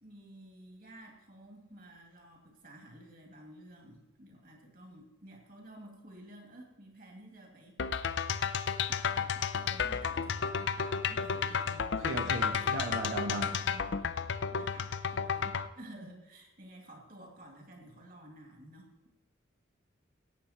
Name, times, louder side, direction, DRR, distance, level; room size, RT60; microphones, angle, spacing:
voice 1, 0.0-7.8 8.9-12.8 13.2-19.1, right 1 dB, 45° right, 1 dB, 2.4 m, -52 dB
sound 1, 7.8-15.7, left 6 dB, 60° left, 0.5 m, -32 dB
voice 2, 12.0-13.5, right 2 dB, 85° right, 3 dB, 1.1 m, -36 dB
17.0 x 8.4 x 4.3 m, 0.96 s
head